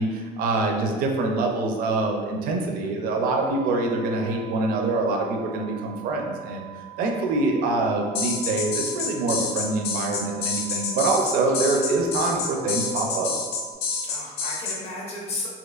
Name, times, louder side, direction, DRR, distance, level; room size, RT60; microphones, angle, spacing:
voice 1, 0.0-6.6 7.0-13.3, right 2 dB, 60° right, 2 dB, 0.5 m, -25 dB
sound 1, 3.2-13.7, right 15 dB, 5° left, 0.3 m, -44 dB
sound 2, 8.1-14.8, left 5 dB, 75° left, 0.6 m, -28 dB
voice 2, 11.5-12.1 14.0-15.5, left 2 dB, 40° left, -4 dB, 0.8 m, -35 dB
4.2 x 2.8 x 2.4 m, 1.5 s
cardioid pair, 175°, 17 cm